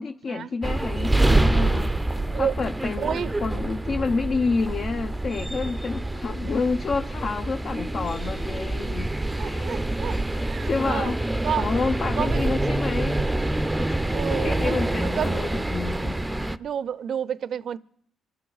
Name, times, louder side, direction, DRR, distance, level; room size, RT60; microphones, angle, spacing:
voice 1, 0.0-1.9 2.3-9.1 9.4-10.0 10.3-11.2 11.6-13.2 13.8-16.2, left 4 dB, 45° left, 0.7 m, -29 dB
sound 1, 0.6-16.6, right 2 dB, 10° right, 0.6 m, -26 dB
voice 2, 3.0-3.3 6.6-6.7 9.4-10.2 10.4-11.1 11.4-11.7 12.2-12.6 14.1-15.7 16.2-17.8, right 8 dB, 60° right, 0.6 m, -30 dB
25.5 x 12.5 x 4.0 m
cardioid pair, 90°, 0 cm